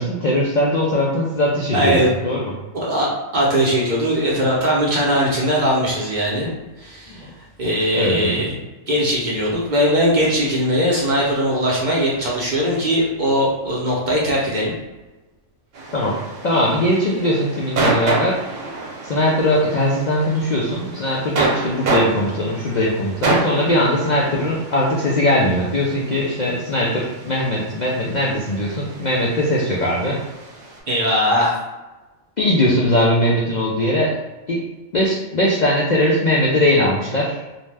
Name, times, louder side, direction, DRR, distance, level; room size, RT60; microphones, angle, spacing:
voice 1, 0.0-2.5 7.1-7.2 7.9-8.4 15.9-16.2 16.4-18.7 19.0-30.2 32.4-34.2 34.5-34.6 34.9-37.4, left 1 dB, 90° left, -4 dB, 0.4 m, -20 dB
voice 2, 1.7-2.1 2.7-3.1 3.3-6.5 6.8-7.3 7.6-8.5 8.9-14.7 30.9-31.6, equal, 45° right, -4 dB, 0.6 m, -20 dB
sound 1, 15.7-30.8, right 3 dB, 70° right, 1.1 m, -28 dB
2.7 x 2.1 x 3.2 m, 1.1 s
omnidirectional pair, 1.3 m